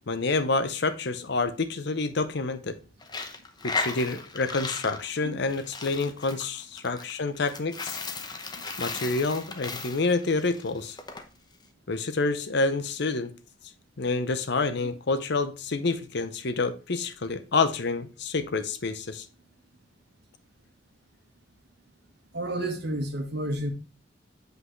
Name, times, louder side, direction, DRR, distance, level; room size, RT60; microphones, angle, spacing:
voice 1, 0.1-2.8 3.6-8.0 8.8-11.0 11.9-13.3 14.0-19.3, left 3 dB, 60° left, 0.7 m, -28 dB
Coin (dropping), 3.0-11.2, left 4 dB, 20° left, 0.8 m, -36 dB
voice 2, 22.3-23.7, right 1 dB, 60° right, 1.4 m, -30 dB
8.1 x 5.3 x 3.1 m
head